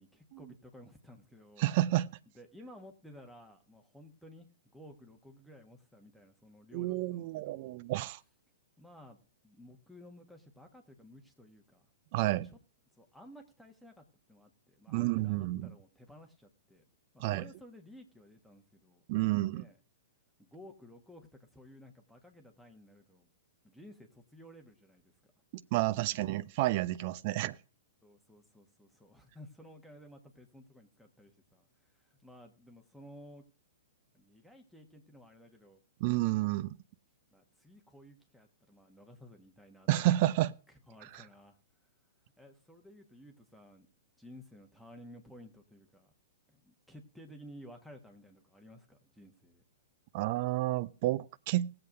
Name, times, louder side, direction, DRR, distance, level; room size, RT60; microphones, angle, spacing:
voice 1, 0.0-1.7 2.3-7.8 8.8-11.8 12.2-12.6 13.0-16.8 17.1-19.8 20.4-23.3 23.6-25.3 25.7-25.9 28.0-31.7 31.9-33.4 34.1-35.8 37.3-39.9 40.9-41.6 42.4-43.9 44.2-46.1 46.5-49.6, equal, ahead, 1.4 m, -55 dB
voice 2, 1.6-2.1 6.7-8.2 12.1-12.5 14.9-15.7 17.2-17.5 19.1-19.7 25.5-27.6 36.0-36.8 39.9-40.5 50.1-51.8, right 16 dB, 40° right, 0.4 m, -30 dB
18.5 x 7.8 x 2.6 m
figure-of-eight pair, 110°, 0 cm